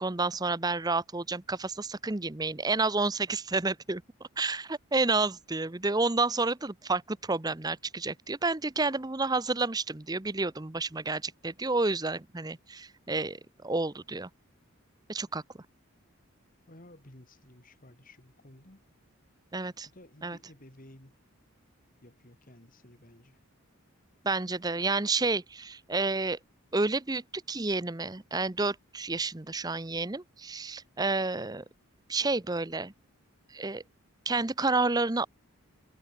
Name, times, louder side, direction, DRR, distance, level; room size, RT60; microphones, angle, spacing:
voice 1, 0.0-4.0 4.4-14.3 15.1-15.4 19.5-19.9 20.2-20.4 24.2-26.4 26.7-31.6 32.1-32.9 33.5-33.8 34.3-35.3, right 3 dB, 20° right, 0.7 m, -30 dB
voice 2, 16.7-18.8 19.9-21.2 22.0-23.4, left 1 dB, 40° left, 2.6 m, -54 dB
head